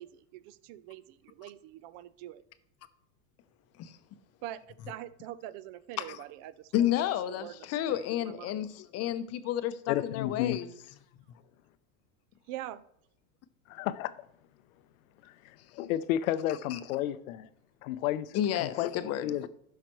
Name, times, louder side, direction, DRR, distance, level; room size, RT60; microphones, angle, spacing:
voice 1, 0.0-2.4 4.4-4.6 4.9-6.5 7.4-7.5 8.2-8.5 12.5-12.8, right 13 dB, 55° right, 0.5 m, -43 dB
voice 2, 6.7-10.7 16.7-16.8 18.3-19.3, left 11 dB, 40° left, 0.6 m, -31 dB
voice 3, 9.9-10.6 13.7-14.3 15.2-17.5 17.8-18.9 19.2-19.5, left 12 dB, 75° left, 0.6 m, -32 dB
12.0 x 5.8 x 3.1 m
supercardioid pair, 110°, 41 cm